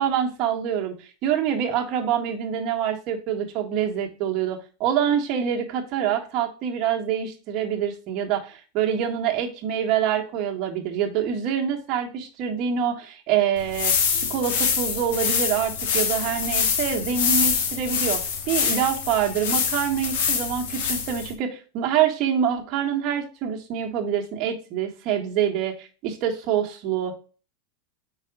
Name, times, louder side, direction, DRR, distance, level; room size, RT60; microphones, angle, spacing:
voice 1, 0.0-27.1, right 9 dB, 45° right, 1 dB, 1.5 m, -26 dB
sound 1, 13.6-21.3, left 6 dB, 70° left, 1.4 m, -25 dB
5.0 x 4.1 x 4.9 m, 0.35 s
supercardioid pair, 125°, 0 cm